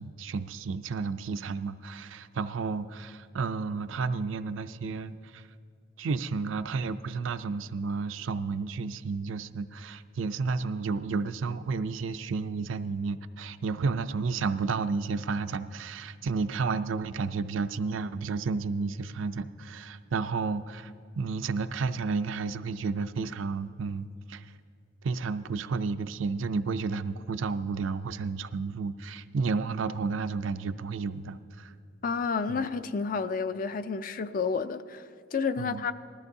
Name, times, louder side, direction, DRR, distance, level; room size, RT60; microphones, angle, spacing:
voice 1, 0.0-5.5 6.0-24.5 25.0-31.7 32.5-32.7 35.6-35.8, right 4 dB, 80° right, 0.4 m, -32 dB
voice 2, 32.0-35.9, left 5 dB, 45° left, 0.4 m, -30 dB
20.0 x 14.0 x 2.7 m
head